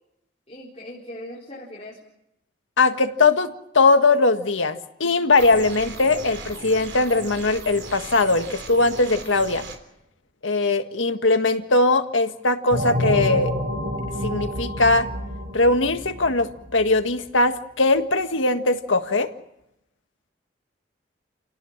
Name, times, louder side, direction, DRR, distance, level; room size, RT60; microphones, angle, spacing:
voice 1, 0.5-2.0, left 1 dB, 30° left, -6 dB, 4.2 m, -39 dB
voice 2, 2.8-9.6 10.4-13.5 14.2-15.1 15.5-19.3, left 3 dB, 85° left, 7 dB, 1.7 m, -20 dB
sound 1, 5.4-9.8, right 3 dB, 65° right, 3.4 m, -37 dB
sound 2, 12.7-17.1, equal, 45° right, 4.5 m, -28 dB
28.5 x 18.5 x 7.4 m, 0.85 s
head